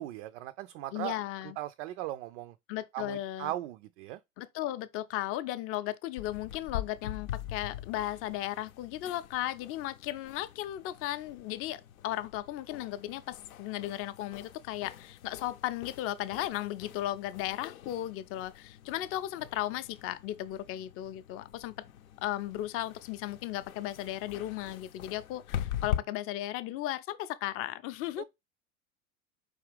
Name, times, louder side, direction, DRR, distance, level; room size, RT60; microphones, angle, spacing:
voice 1, 0.0-1.2 1.6-2.5 2.9-4.2 28.2-28.3, right 14 dB, 55° right, 0.5 m, -38 dB
voice 2, 0.9-1.6 2.7-3.5 4.4-21.7 22.2-28.2, left 14 dB, 35° left, 0.5 m, -36 dB
sound 1, 6.2-26.0, left 10 dB, 80° left, 0.6 m, -43 dB
4.9 x 2.8 x 3.3 m
figure-of-eight pair, 80°, 41 cm